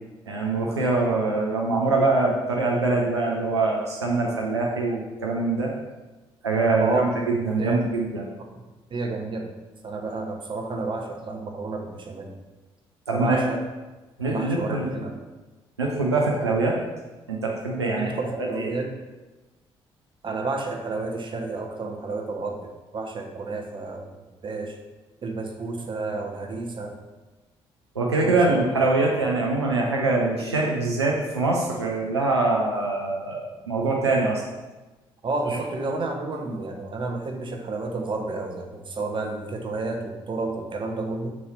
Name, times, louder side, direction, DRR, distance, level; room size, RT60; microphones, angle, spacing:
voice 1, 0.3-5.7 6.4-8.3 13.1-13.4 14.2-14.9 15.8-16.8 17.3-18.1 18.4-18.7 28.0-34.4, right 3 dB, 85° right, -2 dB, 0.5 m, -24 dB
voice 2, 6.8-7.9 8.9-9.5 9.8-12.3 13.1-13.6 14.3-15.2 18.0-18.9 20.2-24.1 24.4-24.8 25.2-27.0 28.2-28.7 35.2-41.3, right 3 dB, 35° right, 2 dB, 1.0 m, -30 dB
6.0 x 3.1 x 5.6 m, 1.2 s
figure-of-eight pair, 45°, 14 cm